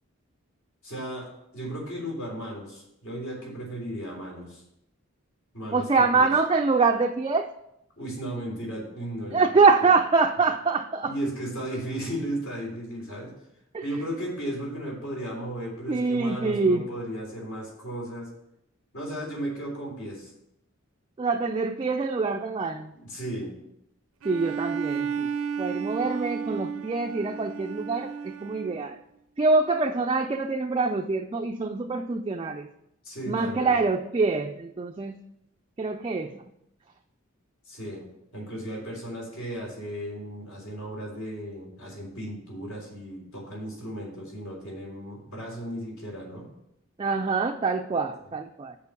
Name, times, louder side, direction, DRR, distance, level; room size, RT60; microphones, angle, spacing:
voice 1, 0.8-1.3 1.5-4.6 5.5-6.3 8.0-9.4 11.0-13.3 13.8-18.3 18.9-20.3 22.9-23.5 33.0-33.8 37.7-38.0 38.3-46.5, right 1 dB, 75° left, -2 dB, 3.5 m, -35 dB
voice 2, 5.7-7.5 9.3-11.1 13.7-13.8 15.9-16.9 21.2-22.9 24.2-25.3 25.6-29.0 29.4-32.7 33.3-35.2 35.8-36.3 47.0-48.8, right 4 dB, 25° right, 4 dB, 0.3 m, -25 dB
Bowed string instrument, 24.2-28.9, right 6 dB, 80° right, 0.5 m, -33 dB
6.7 x 5.2 x 6.9 m, 0.80 s
head